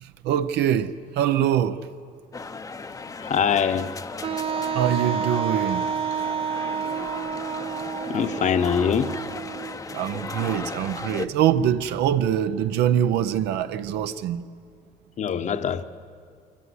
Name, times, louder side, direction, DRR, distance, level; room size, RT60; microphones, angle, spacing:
voice 1, 0.2-1.8 4.7-5.9 9.9-14.4, right 10 dB, 80° right, 0.7 m, -23 dB
sound 1, 2.3-11.3, left 4 dB, 20° left, 0.7 m, -36 dB
voice 2, 3.2-3.9 8.1-9.2 15.2-15.8, left 7 dB, 45° left, 1.0 m, -23 dB
Wind instrument woodwind instrument, 4.2-10.0, right 7 dB, 35° right, 0.5 m, -29 dB
24.0 x 14.0 x 9.6 m
cardioid pair, 110°, 17 cm